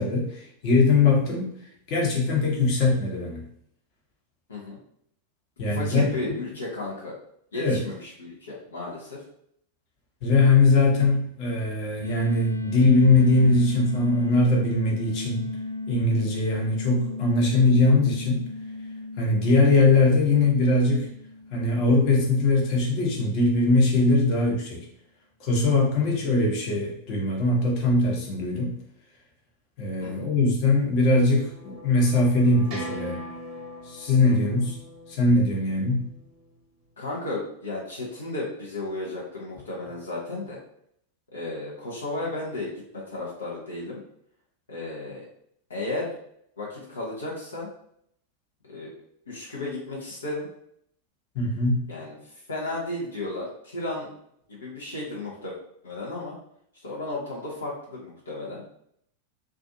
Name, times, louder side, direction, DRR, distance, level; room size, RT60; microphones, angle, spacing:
voice 1, 0.0-1.5 1.9-3.4 5.6-6.0 7.5-7.8 10.2-15.5 15.9-18.5 19.2-21.1 21.5-24.8 25.4-28.8 29.8-33.2 33.8-34.8 35.1-36.1 51.3-51.8, left 2 dB, 40° left, -3 dB, 0.9 m, -21 dB
voice 2, 5.7-7.1 7.5-9.2 30.0-30.3 34.3-34.4 37.0-40.6 41.3-44.0 44.7-45.2 45.7-46.1 46.6-47.7 48.6-48.9 49.3-50.5 51.9-52.2 52.5-54.1 54.5-55.6 55.8-56.3 56.8-58.6, left 2 dB, 70° left, -5 dB, 0.7 m, -34 dB
sound 1, 12.0-22.7, left 2 dB, 90° right, 0.3 m, -35 dB
sound 2, 30.2-36.6, right 1 dB, 35° right, 0.9 m, -42 dB
2.5 x 2.3 x 2.6 m, 0.70 s
figure-of-eight pair, 90°, 0 cm